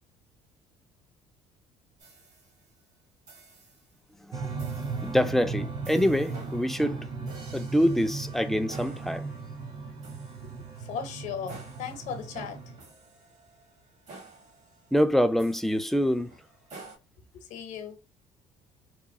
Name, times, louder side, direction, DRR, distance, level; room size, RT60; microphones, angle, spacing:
sound 1, 2.0-2.8 3.3-3.9 4.6-5.2 5.8-17.0, right 3 dB, 65° right, 1.3 m, -51 dB
sound 2, 4.3-12.8, right 4 dB, 40° right, 0.6 m, -37 dB
voice 1, 5.0-7.1 7.5-9.3 14.9-16.3, equal, ahead, 0.3 m, -25 dB
voice 2, 10.8-12.6 17.3-18.0, left 7 dB, 70° left, 0.7 m, -37 dB
2.9 x 2.2 x 2.6 m
supercardioid pair, 80°, 13 cm